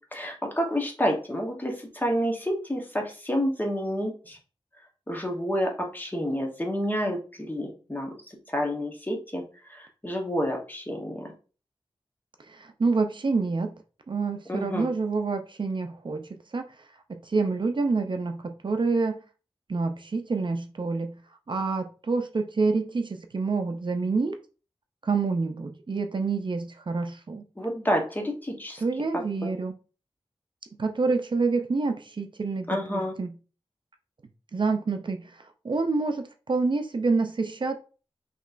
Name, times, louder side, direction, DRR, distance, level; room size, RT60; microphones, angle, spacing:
voice 1, 0.1-4.4 5.1-8.1 8.5-9.4 9.7-11.3 14.5-14.9 27.6-28.8 29.4-29.6 32.7-33.1, equal, 20° left, 1 dB, 1.1 m, -29 dB
voice 2, 12.5-13.7 14.1-16.2 16.5-16.6 17.1-19.2 19.7-21.1 21.5-24.4 25.0-27.4 28.8-29.7 30.8-33.3 34.5-35.3 35.6-37.8, right 4 dB, 50° right, 6 dB, 0.5 m, -27 dB
5.1 x 3.0 x 2.5 m, 0.36 s
wide cardioid pair, 90°, 10 cm